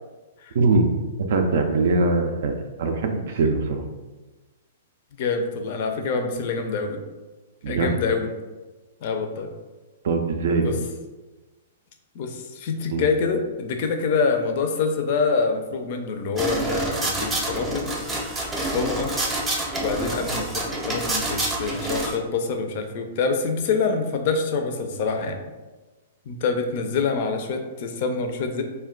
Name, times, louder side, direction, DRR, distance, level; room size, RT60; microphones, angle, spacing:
voice 1, 0.6-0.9 1.3-3.8 7.6-7.9 10.0-10.8 12.9-13.1, right 3 dB, 65° right, 5 dB, 0.3 m, -22 dB
voice 2, 5.2-7.0 7.7-8.3 9.0-9.5 10.6-10.8 12.1-17.9 18.6-19.1 19.8-25.4 26.3-28.6, left 4 dB, 55° left, 5 dB, 0.4 m, -26 dB
sound 1, 16.4-22.1, right 1 dB, 15° right, 0.6 m, -27 dB
2.2 x 2.2 x 3.7 m, 1.2 s
hypercardioid pair, 130°, 0 cm